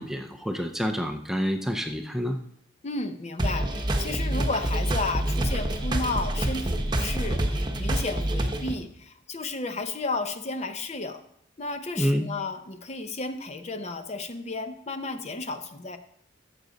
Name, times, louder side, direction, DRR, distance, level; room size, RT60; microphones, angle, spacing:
voice 1, 0.0-2.4 12.0-12.3, equal, ahead, 5 dB, 0.5 m, -28 dB
voice 2, 2.8-11.2 11.6-16.0, left 3 dB, 35° left, 8 dB, 0.7 m, -33 dB
sound 1, 3.4-8.8, right 1 dB, 25° right, 1.0 m, -27 dB
14.0 x 7.7 x 4.0 m, 0.72 s
head